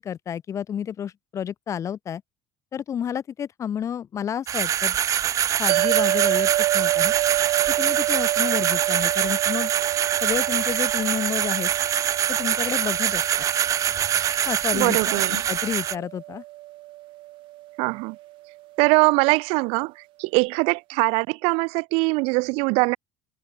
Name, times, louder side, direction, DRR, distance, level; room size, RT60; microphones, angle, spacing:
voice 1, 0.0-2.2 2.7-5.0 5.6-6.5 6.7-7.1 7.8-9.7 10.2-11.7 12.3-13.4 14.5-15.0 15.3-16.4, left 8 dB, 30° left, 1.9 m, -30 dB
sound 1, 4.5-16.0, right 10 dB, 35° right, 0.9 m, -24 dB
sound 2, 5.7-18.2, right 18 dB, 60° right, 1.2 m, -28 dB
voice 2, 14.7-15.4 17.8-18.1 18.8-23.0, right 30 dB, 85° right, 1.2 m, -22 dB
cardioid pair, 160°, 10 cm